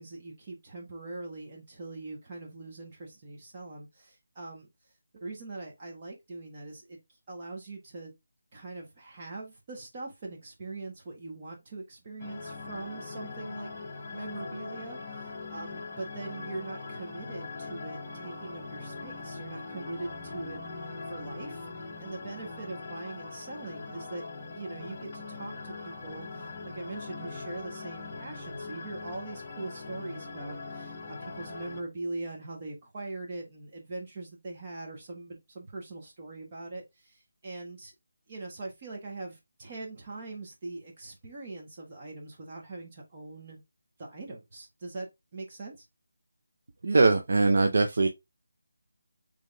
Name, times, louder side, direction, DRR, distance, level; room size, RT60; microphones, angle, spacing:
voice 1, 0.0-4.7 5.1-7.0 7.3-8.1 8.5-13.7 14.1-20.6 21.1-21.7 22.0-24.2 24.5-37.9 38.3-43.6 44.0-45.9, right 2 dB, 25° right, 1.4 m, -42 dB
sound 1, 12.2-31.8, left 3 dB, 25° left, 0.8 m, -41 dB
voice 2, 46.8-48.1, right 3 dB, 55° right, 0.5 m, -22 dB
3.7 x 3.5 x 3.4 m
figure-of-eight pair, 170°, 0 cm